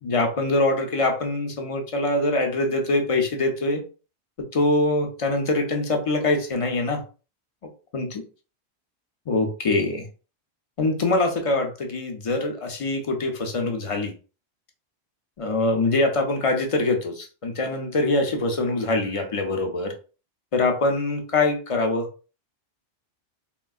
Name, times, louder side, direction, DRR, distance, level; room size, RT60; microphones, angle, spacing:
voice 1, 0.0-3.8 4.4-7.0 7.9-8.2 9.3-10.1 10.8-14.1 15.4-19.9 20.5-22.1, left 2 dB, 50° left, 4 dB, 0.4 m, -24 dB
3.3 x 2.2 x 2.3 m, 0.35 s
omnidirectional pair, 1.1 m